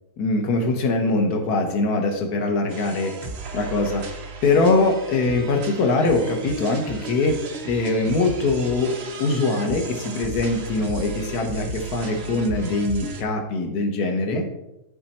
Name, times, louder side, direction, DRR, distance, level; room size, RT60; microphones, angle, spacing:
voice 1, 0.2-3.1 3.5-4.0 4.4-7.4 7.7-14.4, left 3 dB, 55° left, 3 dB, 1.6 m, -22 dB
sound 1, 2.7-13.2, right 3 dB, 50° right, 0.8 m, -35 dB
11.0 x 4.2 x 4.3 m, 0.92 s
omnidirectional pair, 2.1 m